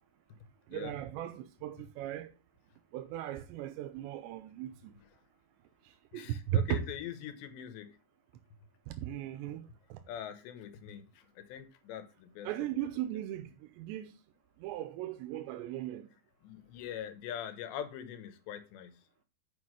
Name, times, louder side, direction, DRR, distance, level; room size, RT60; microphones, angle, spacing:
voice 1, 0.7-2.3 2.9-4.9 6.1-6.8 8.9-9.6 9.9-10.0 12.4-14.1 14.6-16.1, right 11 dB, 90° right, 2.9 m, -37 dB
voice 2, 6.1-7.9 10.1-12.5 16.4-18.9, left 10 dB, 80° left, 3.3 m, -43 dB
7.5 x 5.7 x 6.3 m
omnidirectional pair, 5.0 m